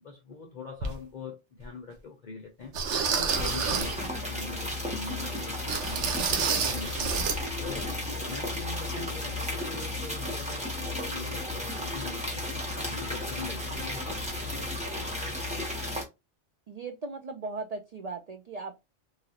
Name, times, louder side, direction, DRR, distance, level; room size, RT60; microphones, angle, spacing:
voice 1, 0.0-2.7 3.1-4.0 4.3-6.1 6.5-7.1 7.6-7.9 8.3-12.4 12.9-14.2 14.6-15.7, left 4 dB, 50° left, 0.6 m, -43 dB
sound 1, 0.8-0.9 1.6-1.7 2.7-4.0 5.7-7.4 7.7-7.8 8.3-8.4, right 6 dB, 85° right, 1.0 m, -29 dB
sound 2, 3.3-16.0, left 2 dB, 5° right, 0.8 m, -34 dB
voice 2, 16.7-18.8, right 3 dB, 70° right, 0.3 m, -38 dB
3.2 x 2.4 x 2.8 m
omnidirectional pair, 1.2 m